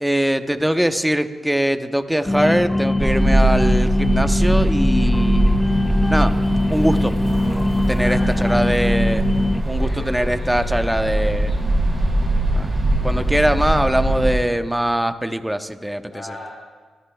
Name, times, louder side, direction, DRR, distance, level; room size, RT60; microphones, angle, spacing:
voice 1, 0.0-5.6 6.1-6.3 6.7-7.1 7.9-9.2 9.7-11.5 12.5-12.7 13.0-16.0, equal, 5° right, 8 dB, 0.9 m, -21 dB
sound 1, 2.3-9.6, left 2 dB, 20° left, 0.4 m, -21 dB
sound 2, 3.0-14.4, right 1 dB, 35° right, 2.7 m, -21 dB
voice 2, 7.9-8.7 9.6-11.6 16.1-16.5, left 2 dB, 65° left, -6 dB, 3.9 m, -39 dB
23.5 x 13.5 x 2.3 m, 1.4 s
cardioid pair, 55°, 0 cm